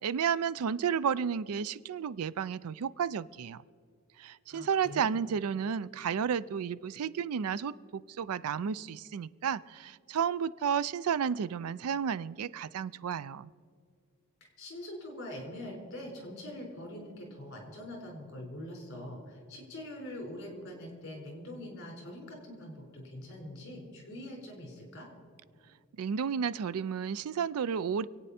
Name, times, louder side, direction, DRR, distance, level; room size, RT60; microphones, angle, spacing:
voice 1, 0.0-3.6 4.2-13.5 26.0-28.1, right 7 dB, 80° right, 18 dB, 0.4 m, -32 dB
voice 2, 4.5-5.2 14.6-25.1, left 1 dB, 50° left, 0 dB, 4.3 m, -44 dB
26.0 x 8.9 x 4.3 m, 2.1 s
head